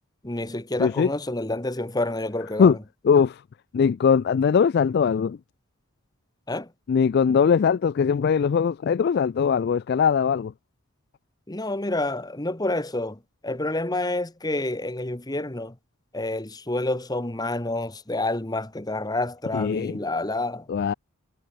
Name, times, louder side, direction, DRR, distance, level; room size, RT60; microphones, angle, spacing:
voice 1, 0.2-2.8 6.5-6.7 11.5-15.7 16.1-20.7, left 2 dB, 20° left, 1.3 m, -28 dB
voice 2, 0.8-1.1 2.6-2.8 3.0-3.4 3.7-5.4 6.9-10.5 19.5-20.0 20.7-20.9, left 6 dB, 50° left, 0.3 m, -21 dB
head